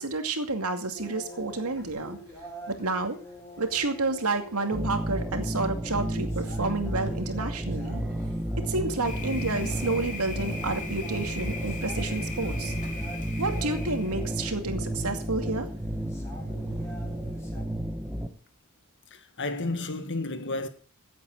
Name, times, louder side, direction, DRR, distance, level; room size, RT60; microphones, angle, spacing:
voice 1, 0.0-2.2 2.7-3.2 3.6-8.0 8.7-12.7 13.4-15.7, right 3 dB, 80° right, 2.4 m, -30 dB
sound 1, 0.9-17.6, right 1 dB, 15° left, 5.7 m, -47 dB
sound 2, 4.7-18.3, right 1 dB, 5° right, 1.6 m, -32 dB
Thunder, 9.0-14.3, left 2 dB, 35° left, 3.3 m, -38 dB
voice 2, 19.1-20.7, left 2 dB, 55° left, 1.8 m, -32 dB
15.5 x 8.5 x 6.5 m
head